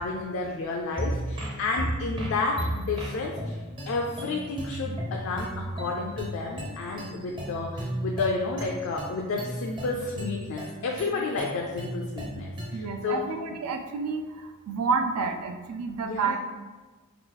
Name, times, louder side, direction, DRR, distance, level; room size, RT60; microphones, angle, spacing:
voice 1, 0.0-13.2 16.0-16.4, left 3 dB, 60° left, -1 dB, 0.3 m, -31 dB
sound 1, 0.9-12.9, right 1 dB, 20° right, 0.5 m, -35 dB
voice 2, 12.7-14.4 14.7-16.4, right 5 dB, 80° right, 6 dB, 0.3 m, -29 dB
3.0 x 2.3 x 3.7 m, 1.3 s
head